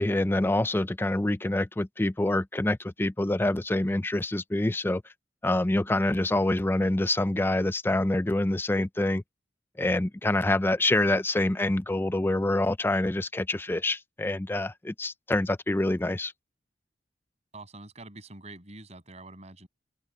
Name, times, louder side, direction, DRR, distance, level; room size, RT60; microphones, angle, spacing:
voice 1, 0.0-5.0 5.4-9.2 9.8-16.3, left 1 dB, 10° left, 0.4 m, -26 dB
voice 2, 17.5-19.7, right 2 dB, 40° right, 7.3 m, -45 dB
open air
head